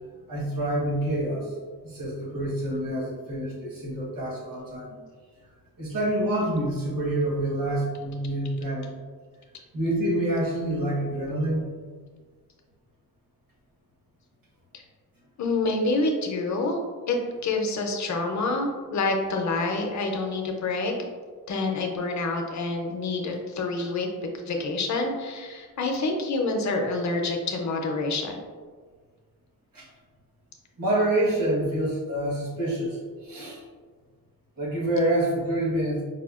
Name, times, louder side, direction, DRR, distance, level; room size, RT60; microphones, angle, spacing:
voice 1, 0.3-1.5 1.8-5.0 5.8-8.9 9.7-11.7 29.7-29.9 30.8-33.6 34.6-36.0, right 1 dB, 70° right, -5 dB, 1.2 m, -27 dB
voice 2, 15.4-16.8 17.1-17.2 17.4-20.9 21.5-24.1 24.5-28.4, left 3 dB, 55° left, 2 dB, 0.6 m, -27 dB
4.8 x 2.2 x 2.4 m, 1.5 s
wide cardioid pair, 110°, 35 cm